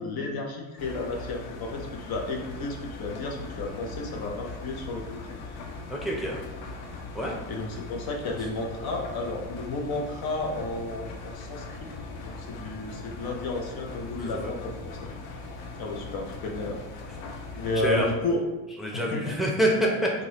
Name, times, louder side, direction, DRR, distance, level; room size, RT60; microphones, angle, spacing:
voice 1, 0.0-5.5 7.5-11.9 12.2-15.1 15.8-16.8 17.6-18.4 18.9-19.3, left 2 dB, 55° left, 1 dB, 0.8 m, -32 dB
Engine, 0.8-18.2, left 3 dB, 90° left, 0.6 m, -40 dB
voice 2, 5.9-6.4 7.1-7.4 14.2-14.5 17.8-18.1 18.8-20.1, right 1 dB, ahead, -3 dB, 0.7 m, -26 dB
3.8 x 2.4 x 3.0 m, 1.1 s
supercardioid pair, 65°, 44 cm